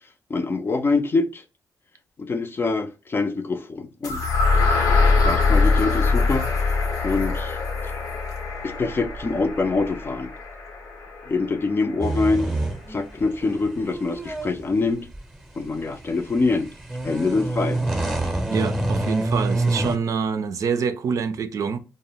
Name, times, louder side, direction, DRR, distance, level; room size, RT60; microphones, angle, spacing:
voice 1, 0.3-1.4 2.2-4.3 5.0-6.5 7.0-7.6 8.6-10.3 11.2-12.5 12.9-15.1 15.6-16.7 17.0-17.8, left 3 dB, 35° left, 0.5 m, -24 dB
sound 1, 4.0-12.0, left 4 dB, 85° left, 0.9 m, -23 dB
sound 2, 12.0-20.0, right 2 dB, 5° right, 0.7 m, -27 dB
voice 2, 18.5-21.8, right 6 dB, 60° right, 0.4 m, -26 dB
2.1 x 2.0 x 3.7 m
cardioid pair, 65°, 6 cm